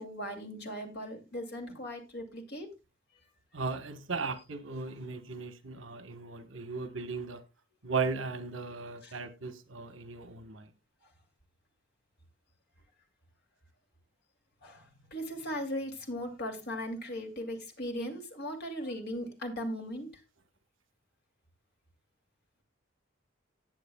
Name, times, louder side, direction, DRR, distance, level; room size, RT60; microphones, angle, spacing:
voice 1, 0.0-2.7 9.0-9.1 14.6-20.1, equal, 55° left, 2.6 m, -38 dB
voice 2, 3.5-7.4 7.8-10.7, right 4 dB, 85° right, 1.2 m, -36 dB
18.5 x 7.6 x 2.3 m
head